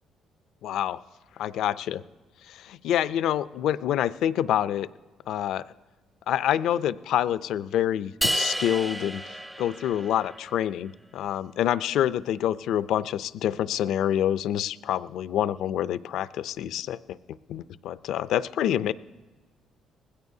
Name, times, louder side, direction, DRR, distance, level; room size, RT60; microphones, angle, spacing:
voice 1, 0.6-1.0 1.4-2.0 2.5-4.9 5.3-5.7 6.3-17.2 17.5-18.9, left 11 dB, 75° left, 16 dB, 0.4 m, -27 dB
sound 1, 8.2-10.5, right 1 dB, 10° right, 0.5 m, -30 dB
20.0 x 16.5 x 2.7 m, 1.3 s
cardioid pair, 105°, 0 cm